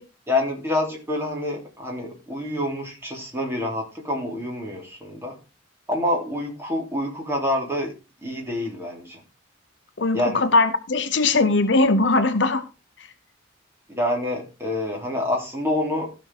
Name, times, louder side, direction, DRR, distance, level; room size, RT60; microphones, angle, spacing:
voice 1, 0.3-5.3 5.9-7.9 8.2-9.2 10.1-10.4 13.9-16.1, left 1 dB, 10° right, 3.2 m, -27 dB
voice 2, 10.0-12.6, left 3 dB, 60° left, 0.8 m, -20 dB
15.0 x 5.3 x 4.8 m
head